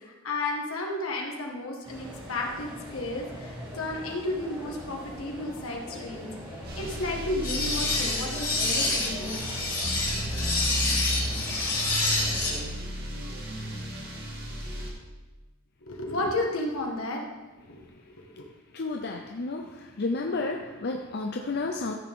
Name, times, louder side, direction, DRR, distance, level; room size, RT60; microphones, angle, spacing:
voice 1, 0.0-6.3 6.7-9.4 15.8-17.2 17.6-17.8 18.1-18.5, left 2 dB, 75° left, 0 dB, 1.8 m, -33 dB
sound 1, 1.8-12.6, equal, 25° right, 2.7 m, -42 dB
sound 2, 6.6-14.9, equal, 50° right, 2.0 m, -34 dB
sound 3, 7.4-12.5, left 2 dB, 20° left, 3.3 m, -28 dB
voice 2, 18.7-19.6 20.0-21.9, left 3 dB, 50° left, 2 dB, 0.6 m, -31 dB
14.5 x 6.7 x 3.7 m, 1.2 s
head